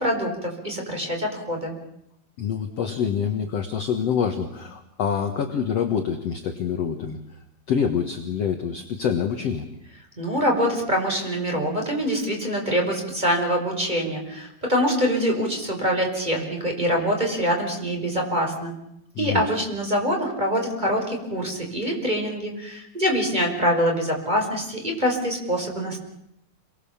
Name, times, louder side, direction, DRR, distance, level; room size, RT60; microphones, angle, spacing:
voice 1, 0.0-1.7 10.2-18.7 19.2-26.0, equal, 10° right, 1 dB, 5.4 m, -24 dB
voice 2, 2.4-7.2 7.7-9.7 19.2-19.5, left 7 dB, 55° left, 6 dB, 2.2 m, -26 dB
29.0 x 23.0 x 7.3 m, 0.78 s
omnidirectional pair, 4.2 m